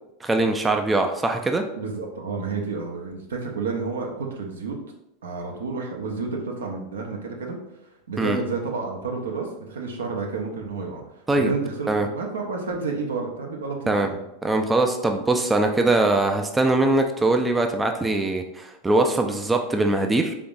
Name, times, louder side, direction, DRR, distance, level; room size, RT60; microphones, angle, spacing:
voice 1, 0.2-1.6 8.2-8.4 11.3-11.5 11.9-12.1 13.9-14.1 14.4-20.3, right 2 dB, 15° right, 4 dB, 0.4 m, -22 dB
voice 2, 1.8-4.8 5.2-7.6 8.1-11.0 11.4-14.2, right 4 dB, 75° right, 1 dB, 0.7 m, -30 dB
3.7 x 3.5 x 2.5 m, 0.86 s
figure-of-eight pair, 90°, 0 cm